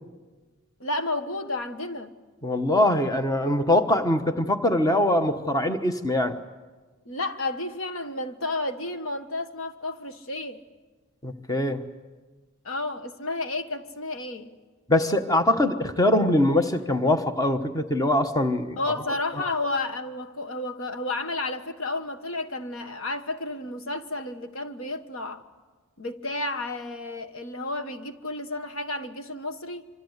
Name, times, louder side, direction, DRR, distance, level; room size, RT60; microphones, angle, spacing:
voice 1, 0.8-2.1 7.0-10.6 12.6-14.5 18.8-25.4 26.0-29.9, left 2 dB, 85° left, 1.4 m, -31 dB
voice 2, 2.4-6.4 11.2-11.8 14.9-18.8 19.4-19.5, left 1 dB, 15° left, 1.2 m, -23 dB
25.5 x 25.0 x 8.2 m
head